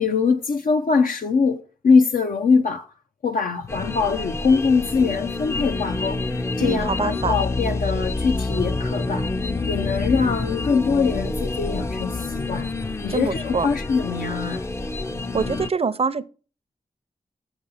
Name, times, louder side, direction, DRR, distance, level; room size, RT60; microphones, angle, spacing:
voice 1, 0.0-2.9 3.2-6.2 6.6-9.3 9.7-12.7 13.0-14.6, left 5 dB, 70° left, 0.6 m, -22 dB
sound 1, 3.7-15.7, left 3 dB, 15° left, 0.5 m, -27 dB
voice 2, 6.6-7.3 13.1-13.7 15.3-16.2, right 5 dB, 40° right, 0.6 m, -24 dB
6.8 x 5.2 x 5.5 m
cardioid pair, 50°, 15 cm